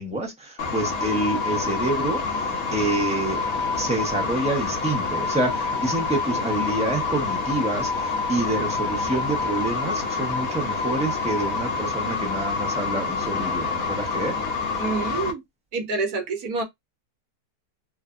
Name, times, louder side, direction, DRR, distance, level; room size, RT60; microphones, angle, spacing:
voice 1, 0.0-3.4 3.7-14.4, right 2 dB, 10° right, 0.4 m, -27 dB
sound 1, 0.6-15.3, left 4 dB, 60° left, 1.1 m, -27 dB
voice 2, 14.8-15.4 15.7-16.6, right 3 dB, 65° right, 1.2 m, -27 dB
3.3 x 2.0 x 2.4 m
omnidirectional pair, 1.9 m